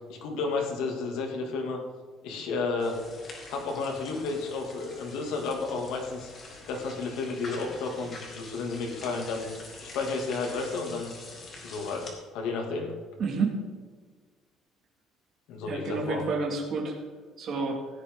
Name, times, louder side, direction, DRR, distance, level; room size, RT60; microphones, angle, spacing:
voice 1, 0.1-1.8 2.2-3.0 3.5-6.3 6.7-9.5 9.8-11.1 11.6-12.9 15.5-16.2, left 4 dB, 80° left, 1 dB, 2.4 m, -32 dB
sound 1, 2.8-12.1, left 3 dB, 30° left, 2.4 m, -45 dB
voice 2, 13.2-13.6 15.7-16.9 17.4-17.8, right 4 dB, 40° right, -1 dB, 2.2 m, -29 dB
16.0 x 10.0 x 3.8 m, 1.5 s
cardioid pair, 170°, 0 cm